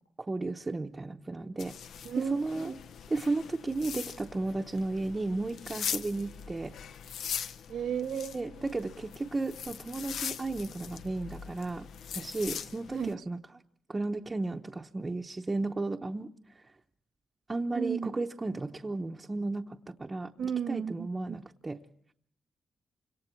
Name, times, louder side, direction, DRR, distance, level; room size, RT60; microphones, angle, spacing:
voice 1, 0.2-1.8 2.2-2.7 3.1-6.8 8.3-11.9 12.1-13.4 13.9-16.3 17.5-20.3 20.7-21.8, right 2 dB, 20° right, 1 dB, 0.9 m, -34 dB
sound 1, 1.6-13.1, left 8 dB, 80° left, 0.9 m, -41 dB
voice 2, 2.0-2.8 7.7-8.7 12.9-13.2 17.7-18.1 20.4-21.4, right 7 dB, 70° right, 11 dB, 1.3 m, -34 dB
29.5 x 26.5 x 4.5 m, 0.69 s
wide cardioid pair, 170°, 0 cm